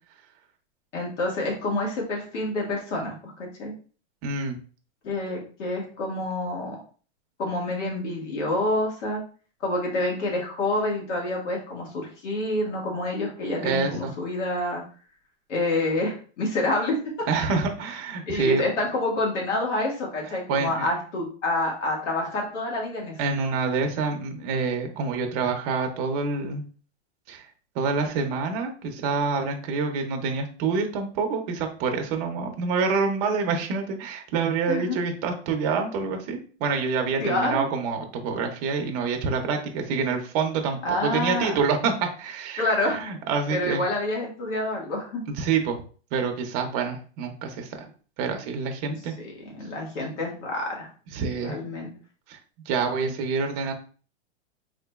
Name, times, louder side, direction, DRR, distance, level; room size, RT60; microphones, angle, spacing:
voice 1, 0.9-3.7 5.0-6.8 7.4-9.2 9.6-14.8 15.5-17.0 17.3-17.6 18.3-23.2 34.7-35.0 37.2-37.7 40.8-41.6 42.6-43.0 43.5-45.2 48.9-50.9 51.4-51.9, left 2 dB, 85° left, -1 dB, 1.7 m, -28 dB
voice 2, 4.2-4.6 13.6-14.1 17.3-18.6 20.5-20.9 23.2-26.6 27.3-27.4 27.7-43.8 45.4-45.8 46.1-47.9 48.2-49.1 51.1-51.6 52.3-52.4 52.7-53.7, right 5 dB, 35° right, 4 dB, 0.6 m, -27 dB
3.7 x 2.9 x 2.3 m, 0.39 s
supercardioid pair, 150°, 35 cm